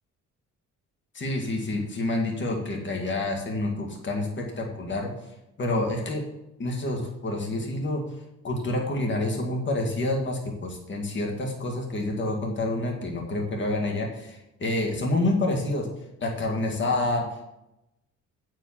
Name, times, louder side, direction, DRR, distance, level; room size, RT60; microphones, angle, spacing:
voice 1, 1.1-5.1 5.6-6.2 6.6-8.0 8.4-15.9 16.2-17.3, left 2 dB, 40° left, 0 dB, 2.2 m, -28 dB
8.7 x 5.0 x 7.5 m, 0.88 s
cardioid pair, 90°, 30 cm